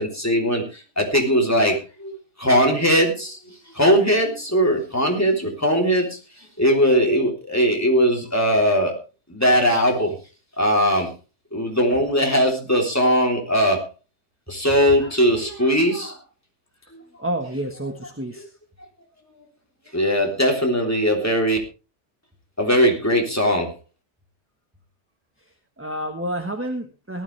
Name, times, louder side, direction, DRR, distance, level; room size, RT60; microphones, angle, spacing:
voice 1, 0.0-9.0 9.3-10.1 10.6-11.1 11.5-13.8 14.5-16.2 19.9-21.6 22.6-23.7, equal, 15° left, 1 dB, 3.4 m, -20 dB
voice 2, 17.2-18.5 25.8-27.2, right 1 dB, 10° right, 5 dB, 1.4 m, -29 dB
18.0 x 12.5 x 3.4 m, 0.31 s
omnidirectional pair, 1.2 m